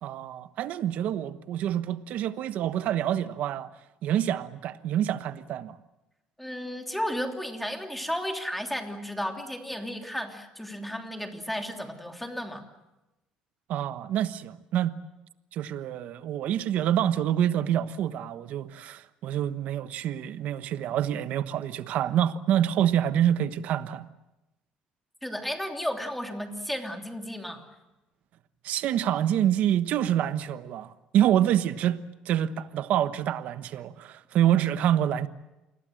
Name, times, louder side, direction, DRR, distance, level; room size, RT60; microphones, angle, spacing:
voice 1, 0.0-3.7 4.0-5.8 13.7-15.0 15.5-24.1 28.6-35.3, right 11 dB, 65° right, 1.2 m, -27 dB
voice 2, 6.4-12.6 25.2-27.6, equal, 5° left, 3.1 m, -33 dB
28.0 x 21.5 x 7.8 m
cardioid pair, 125°, 3 cm